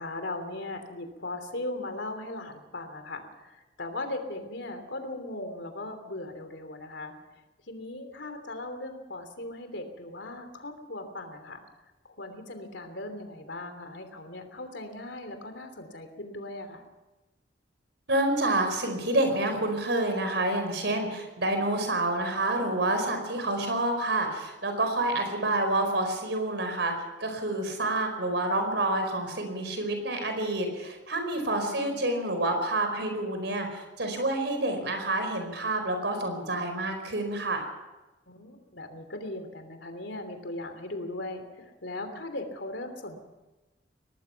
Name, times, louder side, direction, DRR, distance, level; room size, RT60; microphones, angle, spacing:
voice 1, 0.0-7.1 7.7-11.6 12.0-16.8 25.1-25.5 31.7-32.0 38.3-43.2, left 2 dB, 70° left, 7 dB, 3.1 m, -38 dB
voice 2, 18.1-26.9 27.2-37.6, right 2 dB, 65° right, 5 dB, 4.8 m, -28 dB
23.5 x 18.5 x 5.8 m, 1.1 s
head